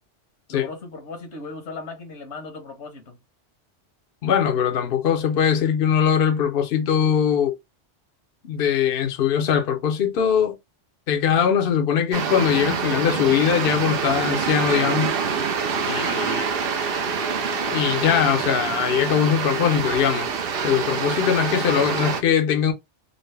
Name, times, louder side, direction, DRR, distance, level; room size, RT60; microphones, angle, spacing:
voice 1, 0.5-3.2, left 3 dB, 75° left, 1.3 m, -37 dB
voice 2, 4.2-7.6 8.4-10.6 11.1-15.2 15.8-16.4 17.7-20.3 20.6-22.7, left 8 dB, 60° left, 0.8 m, -21 dB
sound 1, 12.1-22.2, right 6 dB, 60° right, 0.7 m, -26 dB
Bowed string instrument, 14.2-18.3, right 1 dB, 85° right, 1.1 m, -34 dB
3.9 x 2.1 x 3.2 m
omnidirectional pair, 1.2 m